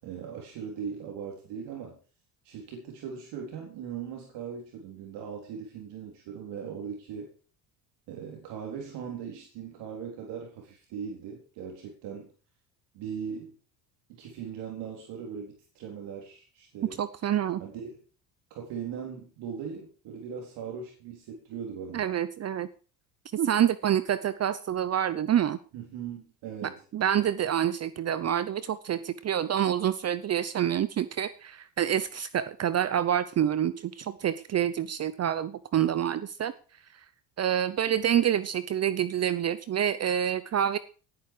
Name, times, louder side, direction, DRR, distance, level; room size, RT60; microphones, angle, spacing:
voice 1, 0.0-2.0 2.4-7.3 8.1-12.3 12.9-13.5 14.1-17.1 17.6-18.0 18.5-22.1 25.7-26.8, right 7 dB, 75° right, 0 dB, 4.1 m, -39 dB
voice 2, 17.0-17.6 21.9-22.7 23.3-25.6 26.6-36.5 37.4-40.8, right 10 dB, 40° right, 15 dB, 0.7 m, -27 dB
18.0 x 9.5 x 4.9 m, 0.39 s
cardioid pair, 115°, 41 cm